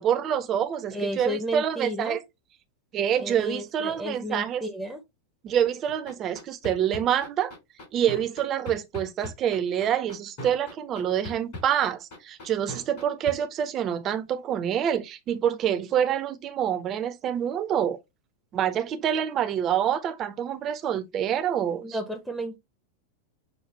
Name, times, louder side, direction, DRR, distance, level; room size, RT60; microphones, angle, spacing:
voice 1, 0.0-2.2 2.9-4.6 5.4-7.5 7.9-18.0 18.5-22.0, right 9 dB, 30° right, 0.7 m, -26 dB
voice 2, 0.9-2.2 3.2-5.0 21.7-22.6, equal, 5° left, 0.9 m, -33 dB
sound 1, 5.9-13.3, left 1 dB, 50° left, 3.1 m, -38 dB
6.6 x 2.4 x 3.3 m
figure-of-eight pair, 90°, 0 cm